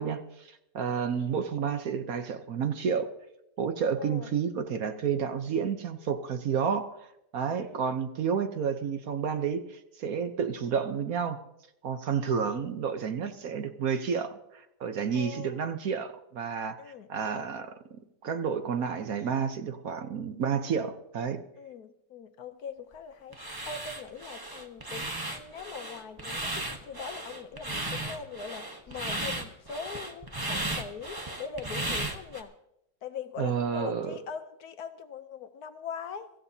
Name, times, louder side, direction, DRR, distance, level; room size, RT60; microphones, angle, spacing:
voice 1, 0.0-3.1 3.6-7.1 7.3-11.4 11.8-16.8 17.1-21.4 33.4-34.2, right 7 dB, 60° right, 1.2 m, -30 dB
voice 2, 1.1-1.5 4.0-4.3 6.5-6.8 7.6-7.9 12.3-12.7 15.1-15.6 16.8-17.1 21.6-32.5 33.0-36.3, left 6 dB, 65° left, 1.1 m, -42 dB
sound 1, 23.3-32.4, right 1 dB, 15° right, 0.9 m, -35 dB
23.0 x 15.0 x 2.8 m
omnidirectional pair, 1.9 m